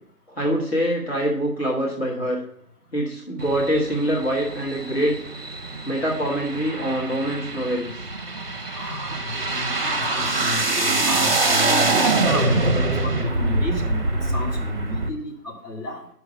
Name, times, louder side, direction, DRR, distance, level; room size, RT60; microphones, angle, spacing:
voice 1, 0.3-2.4 2.9-5.1 5.8-8.1, equal, 40° left, -4 dB, 1.5 m, -24 dB
sound 1, 3.4-15.1, right 2 dB, 35° right, 0.8 m, -24 dB
voice 2, 8.8-16.1, left 2 dB, 80° left, -1 dB, 2.3 m, -32 dB
5.8 x 5.8 x 5.3 m, 0.67 s
figure-of-eight pair, 165°, 47 cm